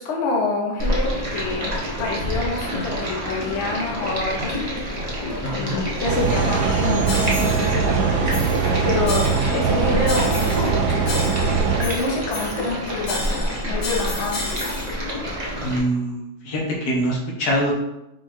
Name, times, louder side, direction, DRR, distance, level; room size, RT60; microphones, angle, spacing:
voice 1, 0.0-1.7 2.0-5.0 5.4-8.4 8.8-11.3 11.8-14.6, left 3 dB, 50° left, -2 dB, 1.1 m, -27 dB
Stream, 0.8-15.8, equal, 35° right, 0.8 m, -28 dB
voice 2, 5.4-5.8 9.5-9.7 15.6-17.7, equal, 70° left, -2 dB, 1.3 m, -24 dB
sound 1, 6.0-11.8, right 6 dB, 90° right, 1.2 m, -21 dB
sound 2, 7.1-7.7 8.3-8.7 9.1-9.7 10.1-10.7 11.1-12.7 13.1-15.0, left 3 dB, 85° left, 1.5 m, -33 dB
4.6 x 2.3 x 4.4 m, 0.91 s
omnidirectional pair, 1.8 m